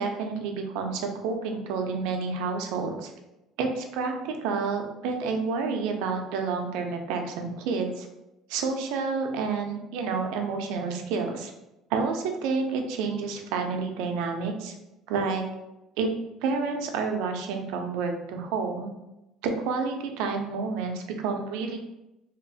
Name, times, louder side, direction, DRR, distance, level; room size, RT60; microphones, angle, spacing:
voice 1, 0.0-3.1 3.6-8.1 8.5-11.5 11.9-14.7 15.1-15.4 16.0-16.1 16.4-18.9 19.4-21.8, right 4 dB, 75° right, 4 dB, 0.4 m, -29 dB
2.8 x 2.3 x 2.6 m, 0.93 s
cardioid pair, 175°, 0 cm